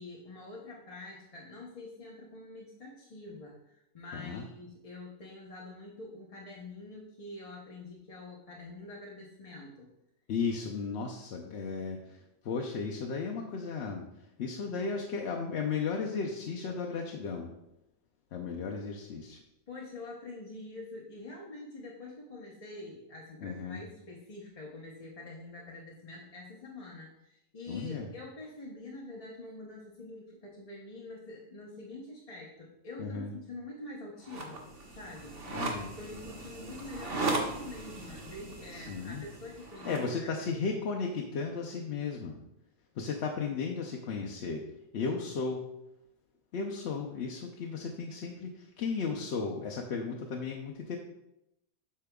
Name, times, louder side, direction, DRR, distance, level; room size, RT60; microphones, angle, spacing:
voice 1, 0.0-9.9 19.7-35.4 36.0-40.6, left 2 dB, 30° left, -3 dB, 0.8 m, -46 dB
voice 2, 4.1-4.4 10.3-14.0 14.4-17.5 18.3-19.4 23.4-23.8 27.7-28.1 33.0-33.3 35.5-36.0 38.7-39.2 39.8-42.4 43.0-44.6 44.9-45.7 46.5-51.0, left 5 dB, 60° left, 0 dB, 0.8 m, -35 dB
sound 1, 34.2-40.1, right 2 dB, 45° right, 1.2 m, -37 dB
8.3 x 6.7 x 2.3 m, 0.86 s
omnidirectional pair, 1.5 m